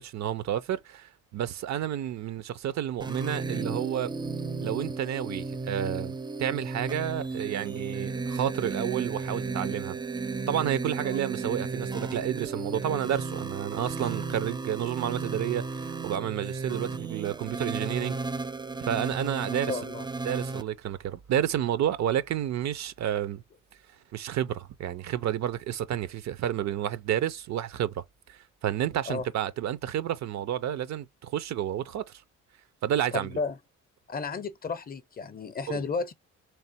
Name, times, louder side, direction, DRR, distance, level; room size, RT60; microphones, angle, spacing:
voice 1, 0.0-4.1 4.6-10.0 10.5-18.2 18.8-19.8 20.3-23.4 24.1-28.0 28.3-32.2 32.8-33.3 35.7-35.8, right 10 dB, 65° right, 0.6 m, -30 dB
sound 1, 3.0-20.6, right 4 dB, 15° right, 0.5 m, -34 dB
voice 2, 19.5-20.1 29.1-29.3 33.1-33.6 34.1-36.1, left 4 dB, 30° left, 0.6 m, -33 dB
3.3 x 3.3 x 4.3 m
cardioid pair, 90°, 30 cm